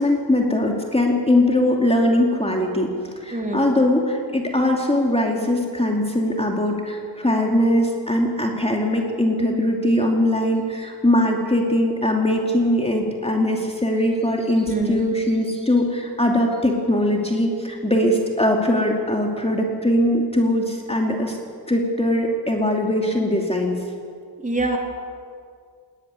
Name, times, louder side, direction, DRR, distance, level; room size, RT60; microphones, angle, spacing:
voice 1, 0.0-2.9 3.2-21.4 21.7-23.8, left 1 dB, 15° left, 1 dB, 2.7 m, -21 dB
voice 2, 3.3-3.7 14.6-15.0 24.4-24.8, right 2 dB, 20° right, 1 dB, 3.2 m, -24 dB
19.5 x 18.0 x 9.6 m, 2.1 s
wide cardioid pair, 120°, 43 cm